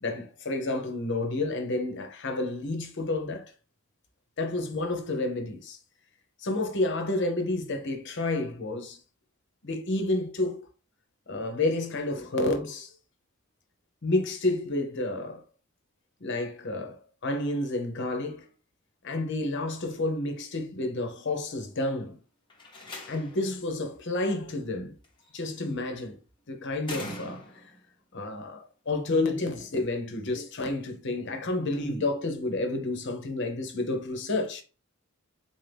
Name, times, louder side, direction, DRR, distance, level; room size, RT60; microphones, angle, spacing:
voice 1, 0.0-3.5 4.4-5.8 6.4-9.0 9.6-10.7 11.3-12.9 14.0-15.4 16.2-18.5 19.0-22.2 23.1-24.9 25.3-26.2 26.5-27.4 28.1-34.6, left 2 dB, 60° left, 0.8 m, -30 dB
Slam, 22.5-23.5 25.0-25.5 26.8-27.8, left 1 dB, 25° left, 1.0 m, -41 dB
3.9 x 2.8 x 3.3 m
head